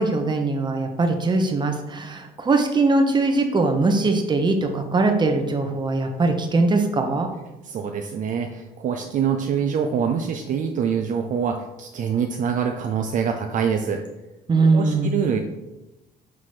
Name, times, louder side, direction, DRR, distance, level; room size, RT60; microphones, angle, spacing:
voice 1, 0.0-7.3 14.5-15.2, right 3 dB, 25° right, 4 dB, 1.0 m, -21 dB
voice 2, 7.6-14.0 14.7-15.4, right 7 dB, 50° right, 4 dB, 0.5 m, -25 dB
5.9 x 3.9 x 4.8 m, 0.98 s
cardioid pair, 110°, 17 cm